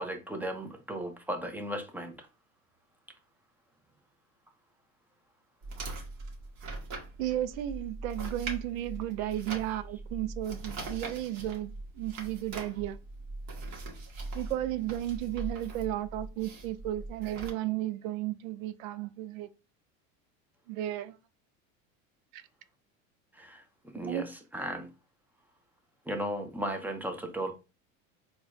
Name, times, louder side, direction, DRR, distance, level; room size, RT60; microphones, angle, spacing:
voice 1, 0.0-2.3 9.2-9.3 23.3-24.9 26.1-27.5, right 1 dB, 5° right, 0.6 m, -36 dB
sound 1, 5.6-17.5, right 2 dB, 45° right, 1.3 m, -41 dB
voice 2, 7.2-13.0 14.3-19.5 20.7-21.1 22.3-22.4 24.0-24.2, right 13 dB, 85° right, 0.5 m, -34 dB
4.2 x 2.4 x 2.6 m
supercardioid pair, 105°, 39 cm